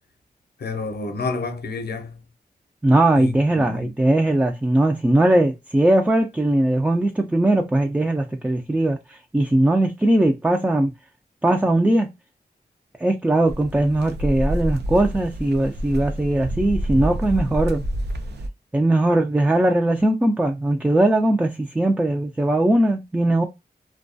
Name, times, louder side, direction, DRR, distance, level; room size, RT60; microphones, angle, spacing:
voice 1, 0.6-2.2 3.2-3.9, left 3 dB, 70° left, 0.6 m, -30 dB
voice 2, 2.8-10.9 11.4-12.1 13.0-17.8 18.7-23.4, right 1 dB, 10° right, 0.3 m, -19 dB
sound 1, 13.5-18.5, equal, 85° right, 0.4 m, -28 dB
2.3 x 2.2 x 2.5 m
wide cardioid pair, 95°, 17 cm